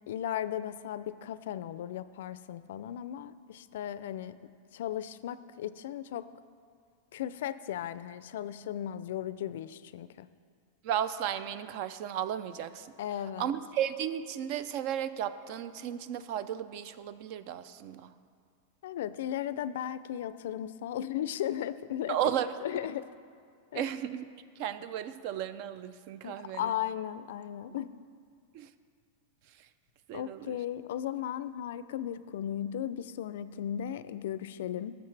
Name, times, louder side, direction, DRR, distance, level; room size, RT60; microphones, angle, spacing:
voice 1, 0.1-4.4 4.7-6.3 7.1-10.3 13.0-13.5 18.8-22.3 22.6-23.1 23.7-23.9 26.2-27.9 30.1-34.9, left 11 dB, 75° left, 15 dB, 0.3 m, -36 dB
voice 2, 10.8-12.9 13.4-18.0 22.1-22.5 23.7-24.3 24.6-26.7 28.5-28.7 30.1-30.6, right 10 dB, 50° right, 14 dB, 0.4 m, -34 dB
16.0 x 7.0 x 3.3 m, 2.2 s
supercardioid pair, 140°, 0 cm